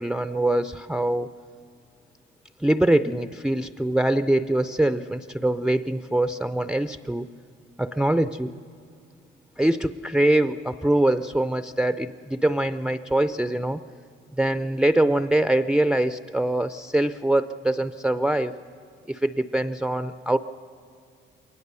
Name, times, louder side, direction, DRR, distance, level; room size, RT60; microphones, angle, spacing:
voice 1, 0.0-1.3 2.6-7.3 7.8-8.5 9.6-13.8 14.3-18.5 19.1-20.4, right 1 dB, 5° right, 12 dB, 0.4 m, -23 dB
22.0 x 19.5 x 6.8 m, 2.3 s
cardioid pair, 90°, 20 cm